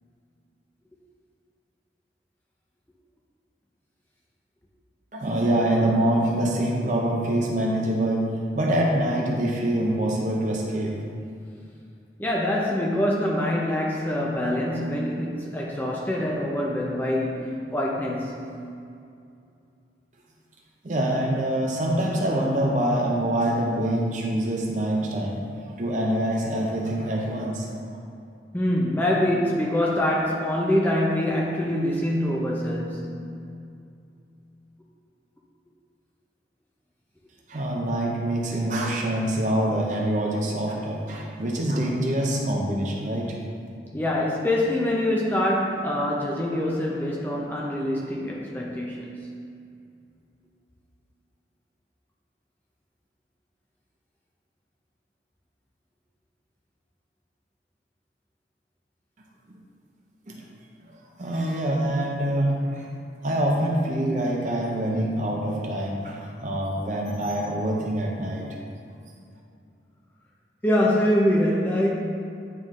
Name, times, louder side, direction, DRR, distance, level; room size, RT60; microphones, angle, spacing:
voice 1, 5.1-8.2 8.5-10.9 20.8-25.4 25.8-27.8 37.5-43.3 59.5-59.6 60.3-60.5 60.8-62.9 63.2-68.5, right 1 dB, 45° right, -1 dB, 0.6 m, -25 dB
voice 2, 12.2-18.5 28.5-33.2 43.9-49.1 70.6-71.9, left 1 dB, 10° left, -3 dB, 0.5 m, -24 dB
9.2 x 3.1 x 3.7 m, 2.5 s
head